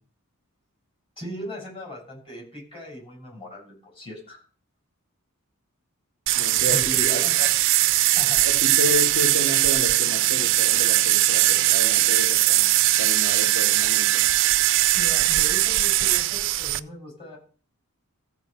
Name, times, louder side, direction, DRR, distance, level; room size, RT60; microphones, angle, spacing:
voice 1, 1.2-4.4 6.7-7.5 8.1-8.5 9.1-9.2 14.9-17.4, equal, 25° left, -2 dB, 7.1 m, -38 dB
voice 2, 6.3-7.2 8.4-14.2, left 2 dB, 55° left, -2 dB, 4.3 m, -31 dB
sound 1, 6.3-16.8, right 16 dB, 55° right, 0.4 m, -20 dB
14.5 x 4.9 x 6.8 m, 0.40 s
head